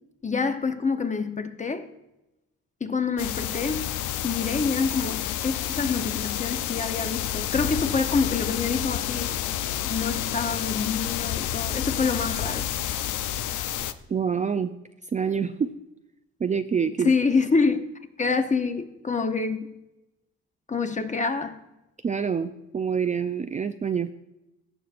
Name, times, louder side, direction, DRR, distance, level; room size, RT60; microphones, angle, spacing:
voice 1, 0.2-1.9 2.8-3.9 4.2-9.3 9.8-12.7 17.0-17.8 18.2-19.7 20.7-21.6, left 4 dB, 25° left, 0.9 m, -26 dB
sound 1, 3.2-13.9, left 12 dB, 80° left, 0.6 m, -29 dB
voice 2, 14.1-14.7 15.1-15.7 16.4-17.1 22.0-24.1, right 6 dB, 25° right, 0.4 m, -26 dB
16.0 x 6.5 x 2.5 m
cardioid pair, 90°, 30 cm